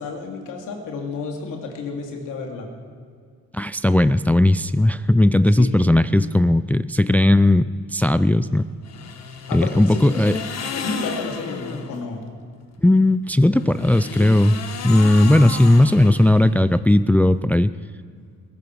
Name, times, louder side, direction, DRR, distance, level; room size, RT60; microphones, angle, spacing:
voice 1, 0.0-2.7 5.6-5.8 9.4-10.4 10.7-12.2, left 4 dB, 85° left, 1 dB, 2.8 m, -31 dB
voice 2, 3.5-8.6 9.5-10.4 12.8-14.5 14.8-17.7, left 1 dB, 5° left, 14 dB, 0.3 m, -17 dB
sound 1, 8.8-12.0 13.4-16.8, left 6 dB, 60° left, 1.6 m, -33 dB
21.5 x 13.0 x 4.7 m, 2.1 s
cardioid pair, 90°, 30 cm